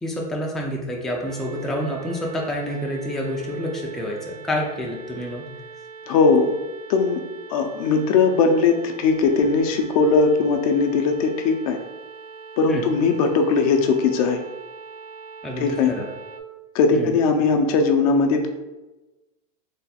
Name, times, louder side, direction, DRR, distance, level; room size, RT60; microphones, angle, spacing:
voice 1, 0.0-5.5 12.7-12.9 15.4-16.1 16.9-17.1, equal, ahead, -2 dB, 0.3 m, -28 dB
sound 1, 1.2-16.4, right 5 dB, 65° right, 0.5 m, -42 dB
voice 2, 6.1-6.5 6.9-7.2 7.5-11.8 12.6-14.4 15.6-15.9 16.7-18.5, left 4 dB, 65° left, 4 dB, 0.6 m, -19 dB
3.4 x 2.3 x 4.1 m, 1.1 s
supercardioid pair, 150°, 20 cm